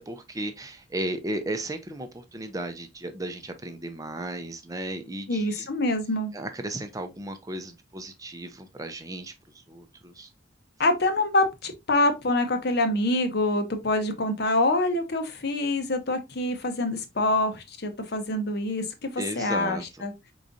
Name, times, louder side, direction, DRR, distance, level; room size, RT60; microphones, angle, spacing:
voice 1, 0.0-5.7 6.3-9.3 9.7-10.3 19.2-20.1, right 1 dB, 20° right, 0.5 m, -35 dB
voice 2, 5.3-6.3 10.8-20.1, left 2 dB, 55° left, 0.9 m, -26 dB
4.9 x 3.9 x 2.6 m
head